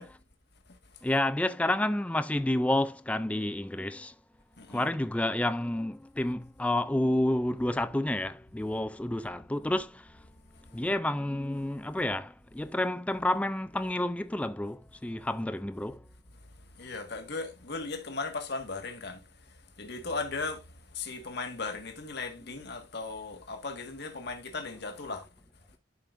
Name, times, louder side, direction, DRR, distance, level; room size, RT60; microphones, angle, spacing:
voice 1, 1.0-4.1 4.7-10.2 10.7-16.0, left 1 dB, 5° left, 0.3 m, -30 dB
voice 2, 16.8-19.2 19.8-25.3, left 3 dB, 60° left, 1.8 m, -37 dB
11.5 x 5.3 x 2.6 m
head